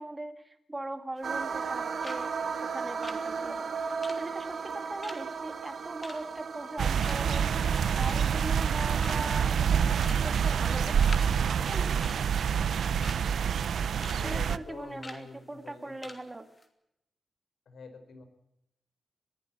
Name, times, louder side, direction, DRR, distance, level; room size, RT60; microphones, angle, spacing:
voice 1, 0.0-11.3 11.7-12.0 14.2-16.4, right 2 dB, 15° right, 8 dB, 2.0 m, -40 dB
sound 1, 1.2-1.8 2.0-2.3 2.5-6.7 7.0-7.4 7.8-8.4 8.7-8.8 9.0-9.4 10.0-10.3 10.5-11.3 11.5-11.7 12.0-13.2 13.6-14.2 14.5-14.6 15.0-15.2 15.7-15.8 16.0-16.2 16.5-16.7, left 2 dB, 25° left, 2.8 m, -45 dB
sound 2, 1.2-11.6, right 5 dB, 55° right, 2.1 m, -37 dB
sound 3, 6.8-14.6, right 7 dB, 80° right, 0.8 m, -27 dB
voice 2, 14.2-16.2 17.7-18.3, left 4 dB, 75° left, 9 dB, 4.6 m, -47 dB
22.0 x 15.5 x 8.5 m, 0.81 s
wide cardioid pair, 170°, 0 cm